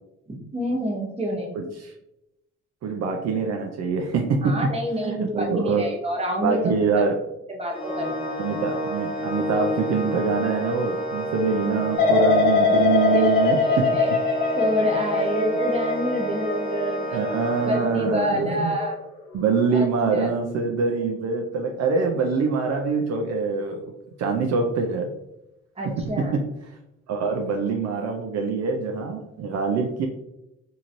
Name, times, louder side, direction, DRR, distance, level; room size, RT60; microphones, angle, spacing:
voice 1, 0.3-1.6 4.4-7.0 7.5-8.5 13.1-13.3 13.6-14.1 14.6-17.2 17.7-19.0 19.7-19.8 20.1-20.3 25.8-26.3, equal, 20° right, 0 dB, 0.8 m, -27 dB
voice 2, 1.5-1.9 2.8-4.6 5.0-5.9 6.4-7.2 8.4-14.2 17.1-18.7 19.3-23.8 24.2-25.1 25.8-26.8 27.1-30.1, right 5 dB, 60° right, 3 dB, 0.4 m, -24 dB
Organ, 7.7-18.5, equal, 20° left, 0.7 m, -30 dB
sound 1, 12.0-18.9 19.3-19.8, left 4 dB, 75° left, 0.8 m, -23 dB
3.0 x 2.7 x 2.5 m, 0.89 s
cardioid pair, 90°, 30 cm